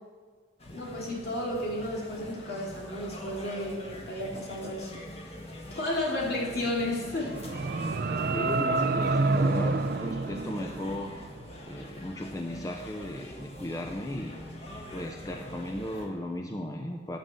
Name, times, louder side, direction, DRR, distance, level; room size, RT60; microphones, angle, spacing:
sound 1, 0.6-16.1, left 1 dB, 35° left, 1.5 m, -44 dB
voice 1, 0.7-5.0 5.7-7.4, left 1 dB, 60° left, -3 dB, 2.9 m, -32 dB
sound 2, 7.1-11.3, right 3 dB, 60° right, 0.5 m, -28 dB
voice 2, 8.3-11.1 11.6-14.4 14.9-17.2, left 1 dB, 20° left, 2 dB, 0.6 m, -36 dB
9.6 x 6.5 x 7.6 m, 1.5 s
head